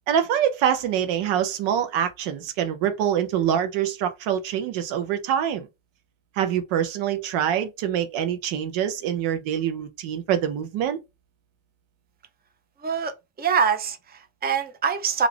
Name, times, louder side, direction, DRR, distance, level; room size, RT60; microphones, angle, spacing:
voice 1, 0.1-5.7 6.4-11.0, right 9 dB, 75° right, 0.7 m, -25 dB
voice 2, 12.8-15.3, right 6 dB, 20° right, 0.6 m, -25 dB
2.5 x 2.4 x 3.2 m
supercardioid pair, 80°, 48 cm